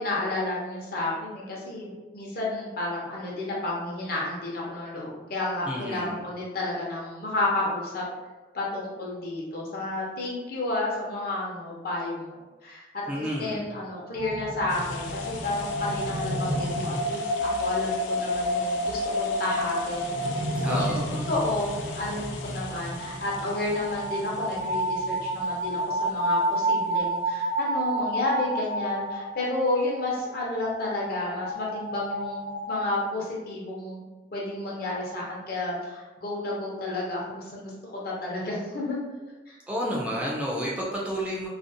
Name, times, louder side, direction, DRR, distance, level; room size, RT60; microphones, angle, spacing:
voice 1, 0.0-8.1 8.5-20.3 20.7-21.0 21.3-34.0 34.3-39.0 39.5-39.6 39.8-40.1, left 2 dB, 55° left, -4 dB, 0.7 m, -31 dB
voice 2, 5.7-6.2 13.1-13.7 18.2-18.3 20.6-21.1 39.7-41.5, equal, 5° right, -5 dB, 0.3 m, -30 dB
sound 1, 14.1-32.8, equal, 70° right, 0.5 m, -30 dB
sound 2, 14.7-27.2, left 4 dB, 85° left, 0.4 m, -43 dB
2.5 x 2.0 x 2.6 m, 1.2 s
head